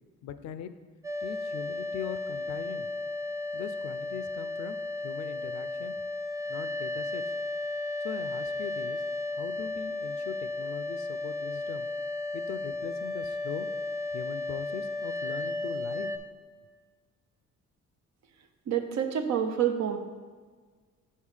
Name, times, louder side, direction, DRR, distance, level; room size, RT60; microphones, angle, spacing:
voice 1, 0.2-0.7 1.2-2.9 3.5-5.9 6.5-7.3 8.0-9.0 9.4-11.9 12.3-13.7 14.1-16.1, left 9 dB, 65° left, 11 dB, 0.5 m, -41 dB
sound 1, 1.0-16.2, left 2 dB, 10° right, 0.4 m, -34 dB
voice 2, 18.7-20.0, right 9 dB, 65° right, 6 dB, 0.7 m, -27 dB
5.5 x 4.2 x 4.9 m, 1.5 s
cardioid pair, 90°, 30 cm